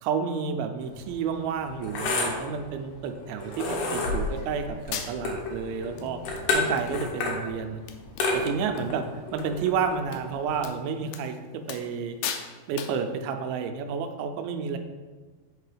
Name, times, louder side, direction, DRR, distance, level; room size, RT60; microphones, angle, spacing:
voice 1, 0.0-6.2 6.5-7.8 8.3-12.2 12.7-14.8, right 6 dB, 85° right, 7 dB, 2.4 m, -30 dB
sound 1, 0.8-10.6, left 3 dB, 65° left, 2.3 m, -31 dB
sound 2, 3.4-9.8, left 3 dB, 45° left, 2.5 m, -49 dB
sound 3, 4.4-4.5 4.9-5.4 6.0-6.1 6.4-6.9 7.2-7.3 7.6-7.7 7.9-8.9 9.2-9.4 10.1-10.2 10.6-10.7 11.1-11.3 11.7-12.0 12.2-12.5 12.8-13.0, left 8 dB, 85° left, 1.8 m, -36 dB
5.3 x 4.5 x 4.9 m, 1.4 s
omnidirectional pair, 4.2 m